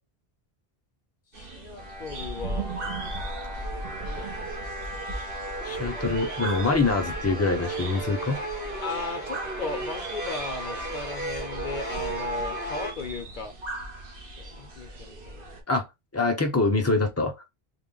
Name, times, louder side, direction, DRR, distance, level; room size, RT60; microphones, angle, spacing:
voice 1, 1.3-2.7 4.1-4.2 4.6-4.7 8.8-13.5 14.4-15.6, left 4 dB, 55° left, 0.7 m, -36 dB
sound 1, 1.3-15.6, right 2 dB, 60° right, 1.1 m, -38 dB
sound 2, 1.8-12.9, right 2 dB, 80° right, 1.8 m, -35 dB
voice 2, 5.6-8.4 15.7-15.8 16.1-17.5, left 3 dB, 20° left, 0.5 m, -25 dB
3.6 x 2.1 x 3.8 m
omnidirectional pair, 1.0 m